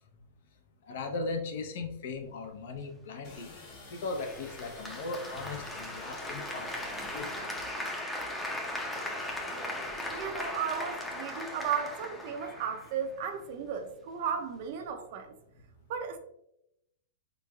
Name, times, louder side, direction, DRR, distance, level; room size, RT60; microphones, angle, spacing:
voice 1, 0.9-3.5 3.9-7.5 9.1-10.1, left 3 dB, 70° left, 0.6 m, -39 dB
sound 1, 3.2-7.7, left 2 dB, 45° left, 1.2 m, -49 dB
Applause, 4.2-13.2, left 1 dB, 5° left, 0.5 m, -38 dB
voice 2, 10.1-15.3 15.9-16.2, right 7 dB, 55° right, 0.5 m, -35 dB
3.6 x 3.1 x 2.2 m
hypercardioid pair, 140°, 0 cm